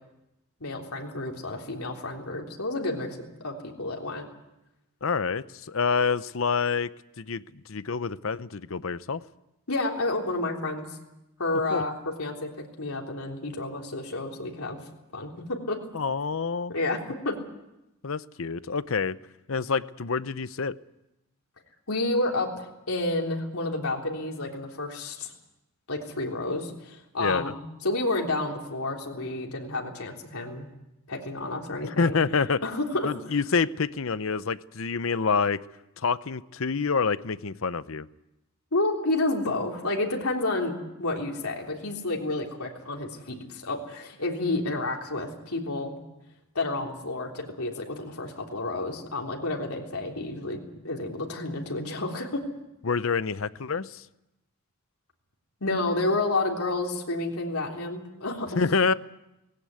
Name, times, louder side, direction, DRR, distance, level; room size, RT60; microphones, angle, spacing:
voice 1, 0.6-3.1 3.4-4.3 9.7-10.9 11.4-12.5 12.8-14.8 15.1-15.8 16.7-17.3 21.9-25.3 25.9-30.7 31.1-32.2 32.6-33.1 38.7-45.9 46.6-52.4 55.6-58.6, left 2 dB, 80° left, 1 dB, 3.5 m, -30 dB
voice 2, 5.0-6.9 7.2-7.4 7.7-9.2 11.7-11.8 15.9-16.7 18.0-19.2 19.5-20.7 27.2-27.5 31.8-32.6 33.0-35.6 36.0-38.1 52.8-54.0 58.6-58.9, left 5 dB, 65° left, 16 dB, 0.7 m, -27 dB
19.5 x 17.0 x 9.6 m, 0.92 s
head